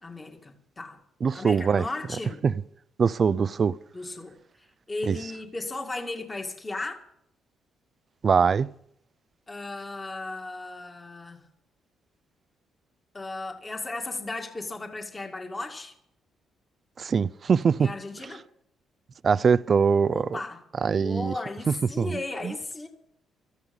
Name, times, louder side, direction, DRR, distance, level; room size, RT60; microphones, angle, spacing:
voice 1, 0.0-1.0 1.3-2.4 3.9-4.4 4.9-7.0 9.5-11.4 13.1-15.9 17.8-18.4 20.1-22.9, left 2 dB, 25° left, 2.2 m, -36 dB
voice 2, 1.2-1.9 2.4-2.5 3.0-3.8 5.1-5.2 8.2-8.7 17.0-17.9 19.2-20.4 20.8-21.3 21.7-22.5, right 6 dB, 45° right, 0.5 m, -23 dB
16.5 x 13.0 x 5.4 m
cardioid pair, 90°, 0 cm